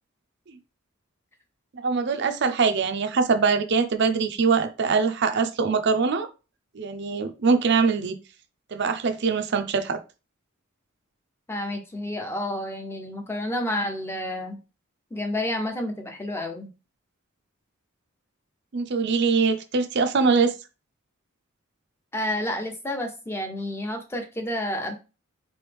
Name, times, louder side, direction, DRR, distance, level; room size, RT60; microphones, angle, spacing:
voice 1, 1.8-6.3 6.7-8.1 8.7-10.0 18.7-20.5, right 5 dB, 55° right, 0.5 m, -23 dB
voice 2, 11.5-14.6 15.1-16.7 22.1-25.0, left 1 dB, 10° left, 0.7 m, -30 dB
3.8 x 3.1 x 3.4 m
head